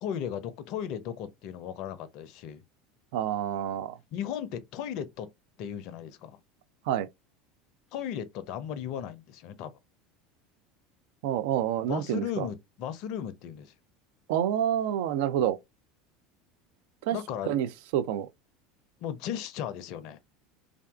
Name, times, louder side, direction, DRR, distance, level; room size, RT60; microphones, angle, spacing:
voice 1, 0.0-2.6 4.1-5.3 5.6-6.4 7.9-9.7 11.8-13.7 17.1-17.6 19.0-20.2, left 9 dB, 60° left, 0.4 m, -36 dB
voice 2, 3.1-4.0 6.9-7.1 11.2-12.5 14.3-15.6 17.1-17.2 17.5-17.7 17.9-18.3, right 10 dB, 65° right, 0.3 m, -28 dB
2.4 x 2.3 x 2.3 m
hypercardioid pair, 75°, 0 cm